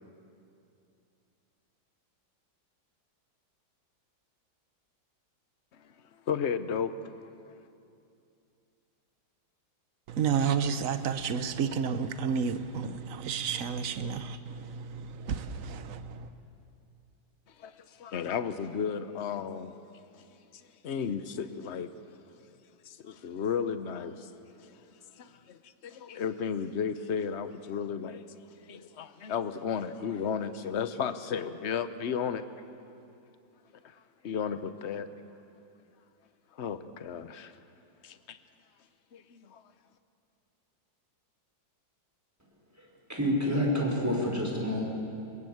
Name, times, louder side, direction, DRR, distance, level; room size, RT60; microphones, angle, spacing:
voice 1, 6.3-7.1 17.6-19.7 20.8-21.9 22.8-24.3 24.6-24.8 25.1-32.5 33.8-35.1 36.5-37.5 39.1-39.6, left 7 dB, 50° left, 0.9 m, -34 dB
voice 2, 10.1-16.3, right 6 dB, 50° right, 1.2 m, -31 dB
voice 3, 42.8-44.9, equal, 10° right, 4.9 m, -28 dB
23.0 x 21.5 x 8.0 m
omnidirectional pair, 2.2 m